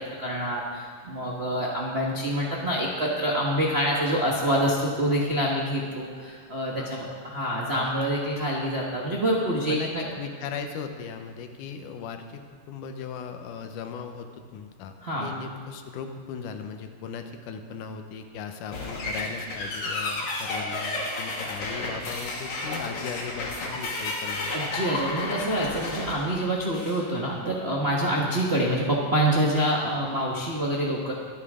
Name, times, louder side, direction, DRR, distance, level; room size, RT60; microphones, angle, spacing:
voice 1, 0.0-10.1 15.0-15.3 24.5-31.1, right 1 dB, 75° right, -4 dB, 0.5 m, -26 dB
voice 2, 6.8-7.2 9.5-12.4 12.7-14.9 15.2-24.6, left 6 dB, 75° left, 6 dB, 2.4 m, -38 dB
sound 1, 18.7-27.1, left 2 dB, 60° left, 3.1 m, -32 dB
23.5 x 9.0 x 3.7 m, 2.1 s
omnidirectional pair, 3.7 m